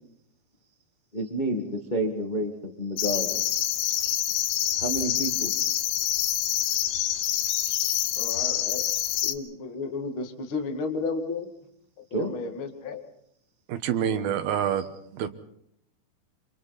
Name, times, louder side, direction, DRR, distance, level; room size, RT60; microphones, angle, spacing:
voice 1, 1.1-3.4 4.8-5.5 12.1-12.4, right 1 dB, 65° left, 2 dB, 0.4 m, -29 dB
sound 1, 3.0-9.3, left 12 dB, 80° left, 3.3 m, -26 dB
voice 2, 8.2-8.8 9.2-11.5 12.1-13.0 14.0-14.2, left 4 dB, 35° left, 4 dB, 2.5 m, -33 dB
voice 3, 13.7-15.3, right 9 dB, 70° right, 9 dB, 2.9 m, -27 dB
28.5 x 27.0 x 4.2 m, 0.73 s
omnidirectional pair, 4.9 m